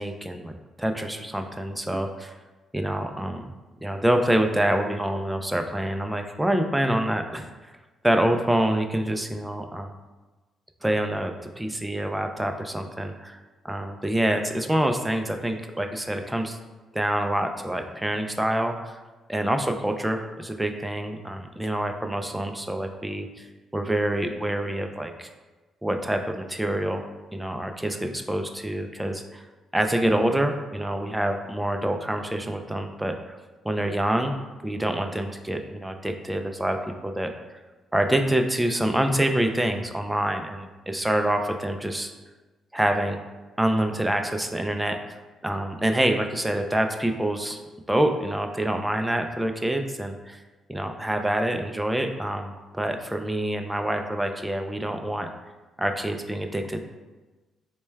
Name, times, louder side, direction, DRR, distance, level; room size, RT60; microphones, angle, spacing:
voice 1, 0.0-2.3 2.7-3.4 3.8-7.5 8.0-10.0 10.8-13.4 13.6-16.6 16.9-19.0 19.3-23.5 23.7-25.3 25.8-27.0 27.3-29.4 29.7-33.4 33.6-34.4 34.6-37.3 37.9-42.1 42.7-43.2 43.6-45.0 45.4-47.6 47.9-50.4 50.7-55.3 55.8-56.8, right 1 dB, 5° right, 5 dB, 0.3 m, -26 dB
4.3 x 2.2 x 3.3 m, 1.2 s
cardioid pair, 90°, 0 cm